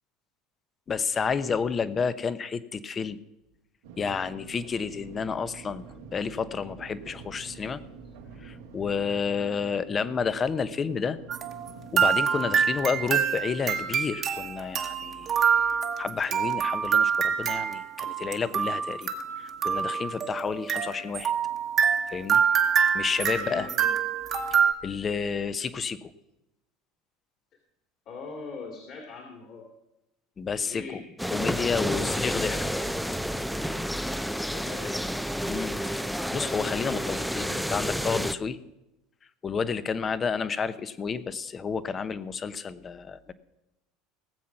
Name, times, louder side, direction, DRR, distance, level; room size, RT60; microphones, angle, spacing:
voice 1, 0.9-3.2 4.0-5.8 6.1-7.8 8.4-11.2 11.9-15.4 16.0-19.1 19.4-21.3 22.1-22.4 22.9-23.7 24.8-26.1 30.4-31.0 31.3-32.9 35.4-35.7 36.3-38.6 39.4-43.3, left 6 dB, 30° left, 14 dB, 0.9 m, -30 dB
sound 1, 3.8-13.1, right 5 dB, 80° right, 2.2 m, -47 dB
sound 2, 11.3-24.7, right 7 dB, 45° right, 1.5 m, -26 dB
voice 2, 23.3-24.0 28.1-29.6 30.5-31.4 34.4-35.0 36.8-37.3, left 4 dB, 50° left, 2 dB, 2.7 m, -42 dB
sound 3, 31.2-38.3, equal, ahead, 0.6 m, -30 dB
18.5 x 7.4 x 5.9 m, 0.92 s
hypercardioid pair, 85°, 0 cm